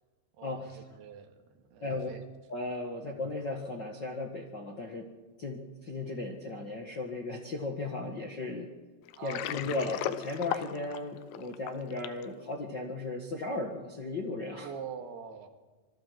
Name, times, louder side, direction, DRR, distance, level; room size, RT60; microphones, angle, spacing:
voice 1, 0.4-2.2 3.1-3.2 9.2-9.5 14.6-15.5, right 6 dB, 80° right, 6 dB, 3.7 m, -44 dB
voice 2, 2.5-5.1 5.4-8.7 9.2-14.7, left 2 dB, 45° left, 0 dB, 1.4 m, -36 dB
Water, 9.1-12.3, left 12 dB, 90° left, 3.0 m, -36 dB
26.5 x 20.5 x 4.7 m, 1.3 s
omnidirectional pair, 4.6 m